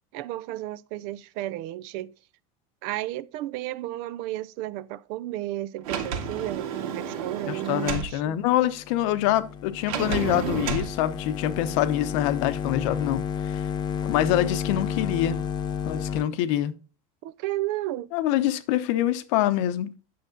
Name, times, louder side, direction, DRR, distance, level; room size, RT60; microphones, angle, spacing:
voice 1, 0.1-2.1 2.8-8.4 17.2-18.1, right 15 dB, 55° right, 0.5 m, -33 dB
Sliding door, 5.8-8.1 9.9-10.9, right 6 dB, 85° right, 2.1 m, -30 dB
voice 2, 7.5-13.6 14.0-15.4 15.8-16.7 18.1-19.9, left 12 dB, 65° left, 0.9 m, -25 dB
sound 1, 8.5-16.2, left 7 dB, 25° left, 0.5 m, -32 dB
9.5 x 6.8 x 3.9 m
cardioid pair, 155°, 17 cm